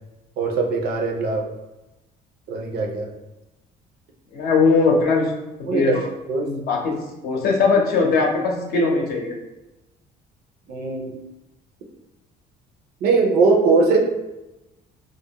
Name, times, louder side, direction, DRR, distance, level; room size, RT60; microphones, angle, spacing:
voice 1, 0.4-1.4 2.5-3.1 5.7-6.0 6.3-6.5 10.7-11.2 13.0-14.0, right 4 dB, 70° right, 1 dB, 0.5 m, -20 dB
voice 2, 4.3-5.3 5.7-6.0 6.4-7.0 7.2-9.4, left 4 dB, 65° left, 0 dB, 0.6 m, -20 dB
2.3 x 2.1 x 2.8 m, 1.0 s
cardioid pair, 110°, 17 cm